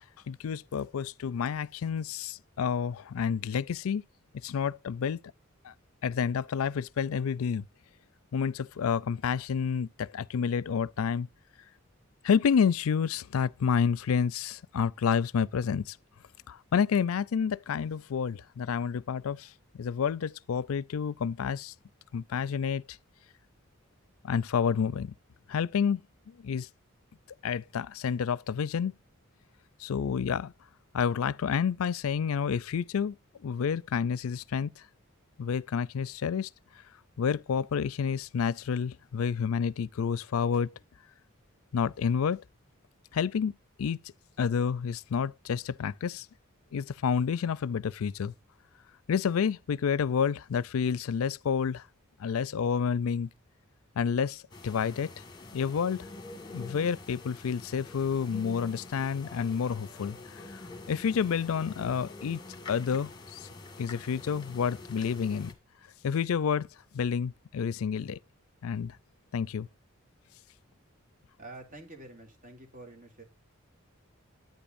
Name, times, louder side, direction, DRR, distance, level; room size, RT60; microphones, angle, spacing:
voice 1, 0.3-4.0 4.4-5.2 5.6-5.7 6.0-7.7 8.3-11.3 12.2-16.0 16.5-19.5 19.8-21.7 22.1-23.0 24.2-25.1 25.5-26.0 26.4-26.7 27.4-28.9 29.8-30.5 30.9-33.2 33.4-34.7 35.4-36.5 37.2-40.7 41.7-42.4 43.1-44.0 44.4-46.3 46.7-48.3 49.1-51.8 52.2-53.3 54.0-55.1 55.5-56.0 56.5-60.2 60.5-60.6 60.9-62.4 62.7-63.5 63.8-65.5 66.0-66.7 66.9-68.2 68.6-69.0 69.3-69.7, left 6 dB, 90° left, 0.4 m, -29 dB
sound 1, 54.5-65.5, left 2 dB, 20° left, 1.7 m, -46 dB
voice 2, 71.4-73.2, right 2 dB, 40° right, 2.4 m, -47 dB
10.0 x 9.2 x 2.6 m
head